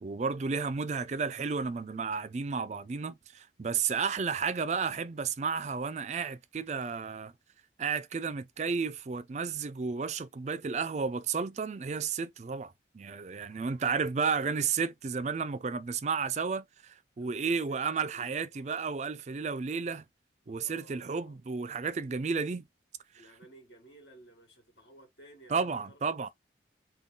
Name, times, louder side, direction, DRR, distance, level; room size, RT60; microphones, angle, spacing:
voice 1, 0.0-7.3 7.8-20.0 20.5-22.6 25.5-26.3, right 5 dB, 40° right, 0.4 m, -32 dB
voice 2, 13.5-14.2 17.2-18.8 20.5-21.4 23.1-26.0, right 1 dB, 70° left, 2.0 m, -57 dB
3.7 x 2.3 x 3.8 m
head